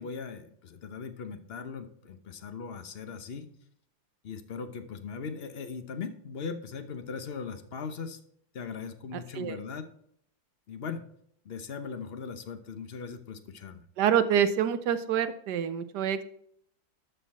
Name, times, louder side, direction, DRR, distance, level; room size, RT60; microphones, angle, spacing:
voice 1, 0.0-3.5 4.2-8.2 8.5-9.9 10.7-11.0 11.4-13.8, left 5 dB, 50° left, 9 dB, 0.7 m, -39 dB
voice 2, 14.0-16.2, right 9 dB, 65° right, 11 dB, 1.3 m, -26 dB
12.0 x 5.8 x 4.2 m, 0.67 s
omnidirectional pair, 2.1 m